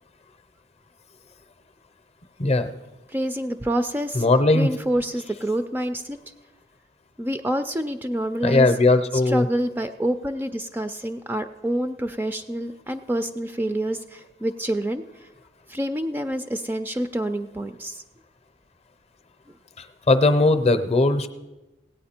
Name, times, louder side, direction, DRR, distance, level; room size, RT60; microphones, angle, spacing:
voice 1, 2.4-2.7 4.1-4.7 8.4-9.4 20.1-21.3, left 2 dB, 35° left, 11 dB, 0.6 m, -18 dB
voice 2, 3.1-4.3 4.5-6.2 7.2-8.7 9.3-15.0 15.7-18.0, right 1 dB, 10° right, 8 dB, 0.3 m, -27 dB
17.0 x 8.7 x 4.3 m, 1.1 s
head